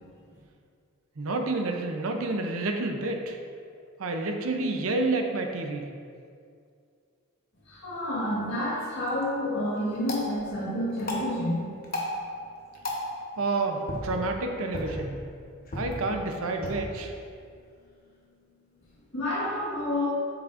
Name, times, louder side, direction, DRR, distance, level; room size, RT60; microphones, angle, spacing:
voice 1, 1.2-3.4 4.0-5.9 13.4-15.2 15.7-17.1, right 2 dB, 70° right, 4 dB, 0.7 m, -29 dB
voice 2, 7.6-11.6 19.1-20.0, left 1 dB, 65° left, -11 dB, 1.6 m, -29 dB
sound 1, 9.0-19.0, left 1 dB, 40° left, 1.0 m, -38 dB
8.2 x 6.2 x 2.5 m, 2.3 s
head